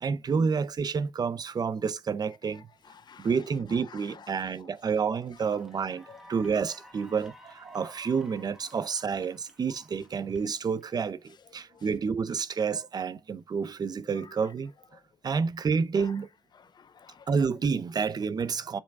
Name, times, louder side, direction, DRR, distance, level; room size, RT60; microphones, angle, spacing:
voice 1, 0.0-2.7 3.2-14.7 15.2-16.3 17.3-18.8, right 5 dB, 50° right, 0.7 m, -29 dB
voice 2, 2.5-3.3 3.9-4.4 5.5-5.6 6.1-6.2 11.7-11.9 14.2-14.3 16.0-16.1 16.5-17.4, left 7 dB, 55° left, 0.7 m, -51 dB
Cheering / Applause, 4.6-4.7 5.1-11.6, equal, 5° right, 1.6 m, -54 dB
7.2 x 4.8 x 3.5 m
wide cardioid pair, 115°, 9 cm